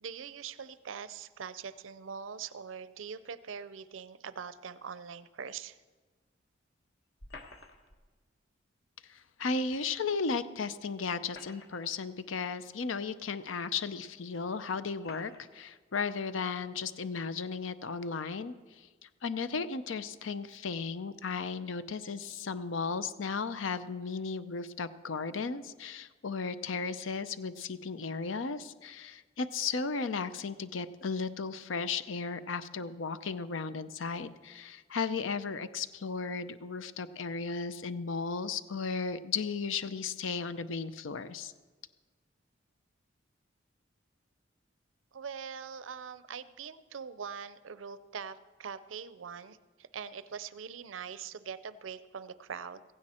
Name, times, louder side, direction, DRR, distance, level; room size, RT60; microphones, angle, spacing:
voice 1, 0.0-5.8 45.1-52.8, right 6 dB, 85° right, 14 dB, 0.5 m, -43 dB
sound 1, 7.2-8.0 9.7-9.8 11.1-12.0 12.9-13.0 13.9-14.0 15.0-15.5, left 3 dB, 55° left, 1.3 m, -50 dB
voice 2, 9.1-18.9 19.2-41.5, left 5 dB, 85° left, 13 dB, 0.6 m, -35 dB
16.0 x 16.0 x 4.3 m, 1.4 s
head